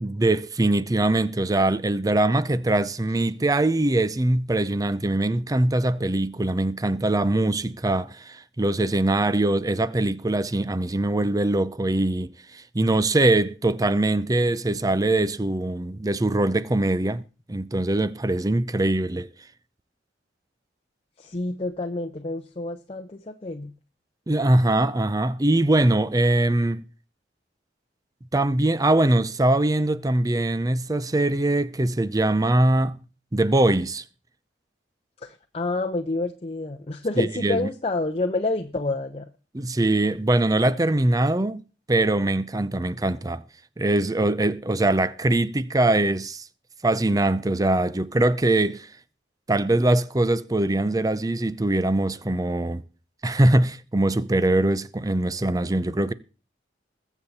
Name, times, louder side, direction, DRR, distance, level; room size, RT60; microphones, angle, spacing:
voice 1, 0.0-17.2 17.5-19.3 24.3-26.8 28.3-33.0 33.3-34.0 37.2-37.7 39.5-41.6 41.9-43.4 43.8-46.4 46.8-48.9 49.5-52.8 53.2-56.1, right 2 dB, 20° right, 0.5 m, -22 dB
voice 2, 21.2-23.7 35.2-39.2, left 2 dB, 35° left, 0.8 m, -28 dB
21.0 x 7.3 x 4.2 m
head